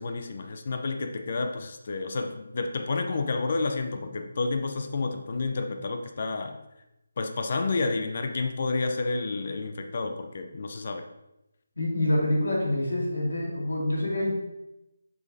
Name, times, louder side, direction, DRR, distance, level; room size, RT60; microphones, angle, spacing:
voice 1, 0.0-6.6 7.2-11.1, left 3 dB, 45° left, 5 dB, 0.5 m, -30 dB
voice 2, 11.8-14.3, left 1 dB, 75° left, -3 dB, 2.3 m, -26 dB
7.8 x 5.5 x 2.7 m, 0.93 s
figure-of-eight pair, 155°, 0 cm